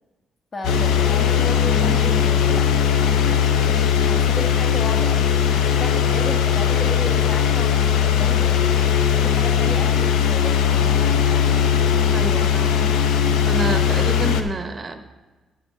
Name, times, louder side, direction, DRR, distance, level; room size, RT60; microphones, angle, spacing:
voice 1, 0.5-8.7 9.2-11.0, left 2 dB, 40° left, 3 dB, 1.6 m, -34 dB
sound 1, 0.6-14.4, left 8 dB, 90° left, 0.7 m, -19 dB
voice 2, 12.1-13.0 13.5-15.1, right 3 dB, 35° right, 8 dB, 0.7 m, -28 dB
11.0 x 4.4 x 6.4 m, 1.3 s
cardioid pair, 90°, 0 cm